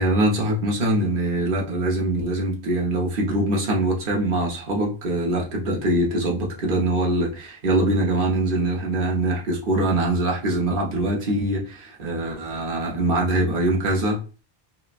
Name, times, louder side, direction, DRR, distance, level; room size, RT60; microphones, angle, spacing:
voice 1, 0.0-14.2, right 1 dB, 60° right, -2 dB, 1.0 m, -23 dB
4.1 x 2.1 x 2.4 m, 0.35 s
omnidirectional pair, 1.1 m